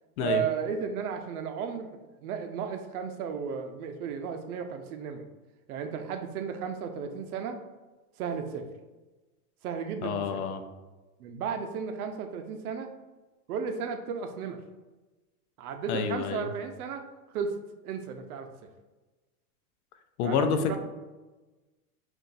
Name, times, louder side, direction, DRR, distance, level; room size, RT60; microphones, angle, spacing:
voice 1, 0.2-1.9 2.2-5.2 5.7-7.6 8.2-8.7 9.6-10.4 11.2-12.9 13.5-14.6 15.6-17.0 17.3-17.5 17.8-18.5 20.2-20.8, right 6 dB, 70° right, 6 dB, 0.7 m, -34 dB
voice 2, 10.0-10.6 15.9-16.5 20.2-20.8, left 6 dB, 70° left, 8 dB, 0.6 m, -28 dB
5.5 x 2.6 x 2.5 m, 1.2 s
hypercardioid pair, 125°, 46 cm